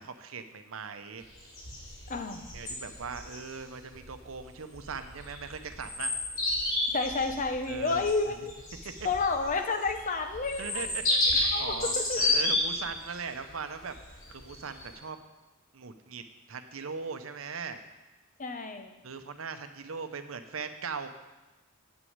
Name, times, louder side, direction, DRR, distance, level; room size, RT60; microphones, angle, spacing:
voice 1, 0.0-1.5 2.5-6.1 7.7-8.0 10.6-13.9 14.3-15.2 15.7-16.2 16.5-17.8 19.0-21.1, right 5 dB, 85° right, 8 dB, 0.8 m, -39 dB
sound 1, 1.2-14.9, left 2 dB, 75° left, 2.6 m, -32 dB
voice 2, 2.1-2.5 6.9-8.5 9.0-10.9 11.5-12.2 18.4-18.9, left 3 dB, 40° left, 7 dB, 0.8 m, -30 dB
8.3 x 6.2 x 8.0 m, 1.1 s
head